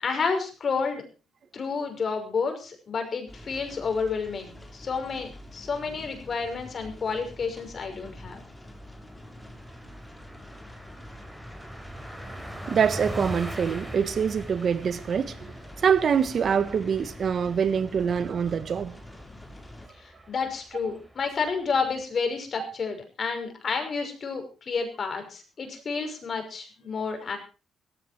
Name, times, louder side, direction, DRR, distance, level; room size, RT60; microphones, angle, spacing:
voice 1, 0.0-1.0 1.5-8.4 20.0-27.4, left 5 dB, 45° left, 5.9 m, -30 dB
sound 1, 3.3-19.9, left 1 dB, 10° left, 4.2 m, -46 dB
Car passing by, 6.9-7.0 7.4-7.5 7.8-22.0, right 1 dB, 5° right, 4.4 m, -43 dB
voice 2, 12.7-15.4 15.8-18.9, right 7 dB, 50° right, 1.3 m, -25 dB
17.0 x 15.0 x 4.5 m
cardioid pair, 90°, 0 cm